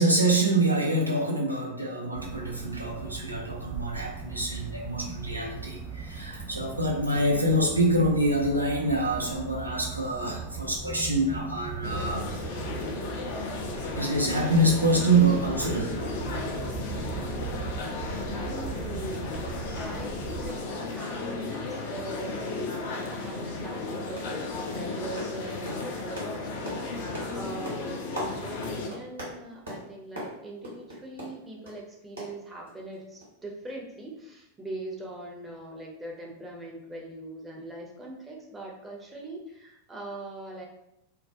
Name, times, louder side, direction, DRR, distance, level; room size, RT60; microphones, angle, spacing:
voice 1, 0.0-12.3 13.9-16.0 17.5-17.6, right 1 dB, 85° right, -2 dB, 0.5 m, -26 dB
sound 1, 2.1-20.5, right 5 dB, 45° right, 0.9 m, -38 dB
sound 2, 11.8-28.9, left 3 dB, 50° left, 0.4 m, -34 dB
voice 2, 18.4-40.7, right 2 dB, 15° right, -2 dB, 0.6 m, -42 dB
sound 3, 23.2-23.3 23.6-23.9 24.2-24.4 24.7-31.8 32.2-32.9 33.2-33.3 33.7-33.8, equal, 70° right, 0.9 m, -41 dB
2.2 x 2.1 x 2.6 m, 0.82 s
figure-of-eight pair, 90°, 0 cm